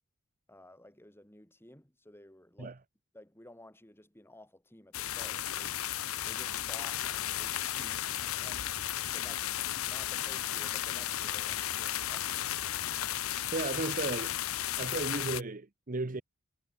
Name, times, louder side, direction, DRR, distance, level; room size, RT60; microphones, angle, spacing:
voice 1, 0.5-2.8 3.1-5.8 6.2-8.8 9.1-12.3, left 1 dB, 10° left, 7.2 m, -54 dB
sound 1, 4.9-15.4, left 12 dB, 70° left, 0.8 m, -34 dB
voice 2, 13.5-14.4 14.8-16.2, right 3 dB, 40° right, 1.0 m, -34 dB
head